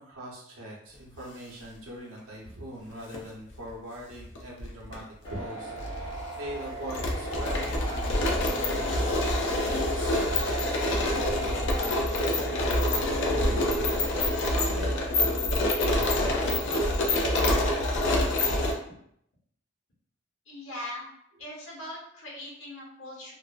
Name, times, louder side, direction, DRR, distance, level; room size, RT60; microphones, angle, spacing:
voice 1, 0.0-5.0 5.3-9.0 9.3-15.5 15.8-16.6, right 1 dB, 90° right, -3 dB, 0.8 m, -42 dB
sound 1, 2.9-3.2 4.2-5.0 5.2-5.3 5.8-18.7, left 1 dB, 60° left, 0.4 m, -26 dB
sound 2, 5.2-11.9, right 1 dB, 25° left, 0.9 m, -39 dB
voice 2, 20.5-21.1 21.4-23.3, left 1 dB, 80° left, -4 dB, 1.1 m, -40 dB
2.6 x 2.0 x 2.3 m, 0.70 s
head